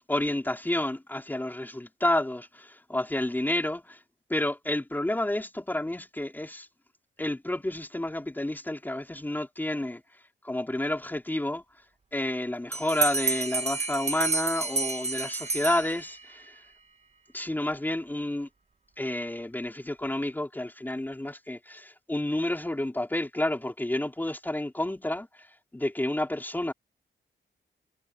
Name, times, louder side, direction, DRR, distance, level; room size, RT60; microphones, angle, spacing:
voice 1, 0.1-4.0 4.3-6.7 7.2-10.0 10.4-11.6 12.1-16.6 17.3-18.5 19.0-25.3 25.7-26.7, left 1 dB, 10° left, 3.9 m, -30 dB
Bell, 12.7-16.3, right 3 dB, 35° right, 2.1 m, -30 dB
wide cardioid pair, 140°, 19 cm